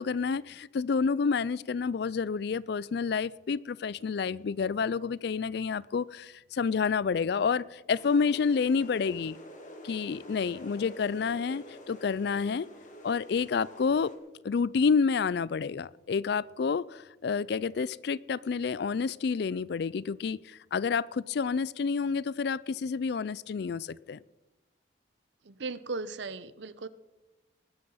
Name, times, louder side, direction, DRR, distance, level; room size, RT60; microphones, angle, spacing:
voice 1, 0.0-9.4 9.8-12.7 13.0-14.1 14.4-24.2, left 5 dB, 55° left, 0.4 m, -29 dB
sound 1, 7.9-14.2, left 1 dB, 40° left, 2.6 m, -48 dB
voice 2, 25.4-26.9, right 3 dB, 65° right, 0.7 m, -37 dB
20.0 x 9.7 x 5.6 m
head